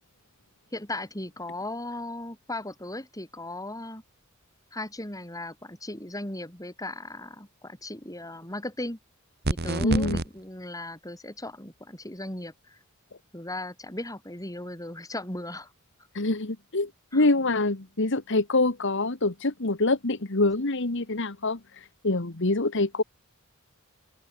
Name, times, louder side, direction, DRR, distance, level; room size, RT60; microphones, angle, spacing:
voice 1, 0.7-4.0 4.7-9.0 9.5-12.8 13.3-15.7 17.1-17.3, left 1 dB, 15° left, 7.8 m, -37 dB
sound 1, 9.4-10.3, right 2 dB, 50° right, 1.7 m, -27 dB
voice 2, 9.8-10.2 16.1-23.0, left 2 dB, 60° left, 1.7 m, -25 dB
open air
head